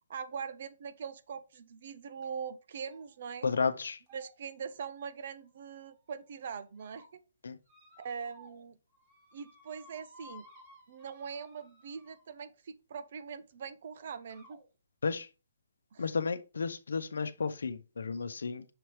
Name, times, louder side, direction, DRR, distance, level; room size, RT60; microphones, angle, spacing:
voice 1, 0.1-3.5 4.1-7.2 8.0-8.8 9.3-10.5 10.9-14.6 15.9-16.1, right 6 dB, 55° right, 0.6 m, -42 dB
sound 1, 2.2-2.5 2.8-3.2 3.5-3.7 4.1-6.0 6.5-7.1 7.7-8.6 8.9-12.5 13.5-13.6 14.3-14.6, left 1 dB, 25° right, 2.2 m, -59 dB
voice 2, 3.4-4.0 7.4-7.6 15.0-15.3 16.0-18.7, left 5 dB, 80° left, 0.7 m, -33 dB
6.7 x 3.0 x 4.7 m
hypercardioid pair, 150°, 0 cm